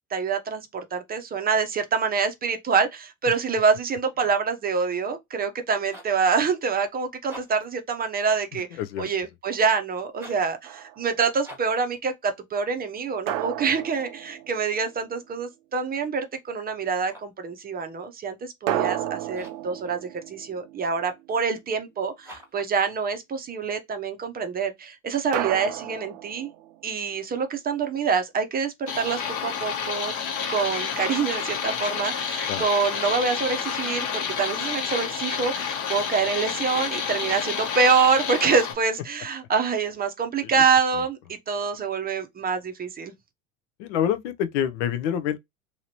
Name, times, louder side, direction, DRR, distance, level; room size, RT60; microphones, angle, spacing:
voice 1, 0.1-8.7 9.0-26.5 26.8-30.1 30.5-43.1, right 5 dB, 20° right, 0.6 m, -26 dB
sound 1, 5.9-6.2 7.1-7.8 10.1-10.5 11.4-11.8 16.9-17.4 19.3-19.7 22.2-22.7, right 1 dB, 5° right, 1.2 m, -46 dB
voice 2, 8.8-9.1 32.5-32.6 40.4-40.5 43.8-45.4, left 9 dB, 65° left, 0.6 m, -26 dB
sound 2, 10.6-11.2 13.3-15.1 18.7-21.3 25.3-27.0, right 12 dB, 65° right, 0.5 m, -32 dB
sound 3, 28.9-38.7, left 7 dB, 45° left, 1.0 m, -29 dB
2.9 x 2.7 x 2.8 m
hypercardioid pair, 95°, 40 cm